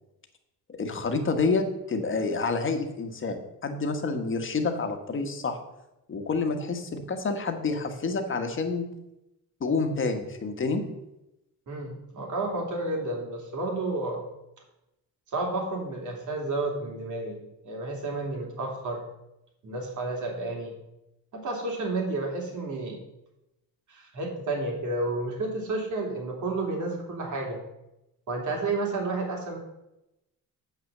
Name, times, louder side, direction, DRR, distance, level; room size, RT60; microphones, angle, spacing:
voice 1, 0.7-5.6 6.1-8.9 9.6-10.8, left 4 dB, 35° left, 6 dB, 1.4 m, -28 dB
voice 2, 11.7-14.2 15.3-19.0 19.6-20.7 21.3-23.0 23.9-27.6 28.3-29.6, right 2 dB, 60° right, 0 dB, 3.1 m, -31 dB
8.1 x 5.8 x 6.7 m, 0.89 s
cardioid pair, 125°, 34 cm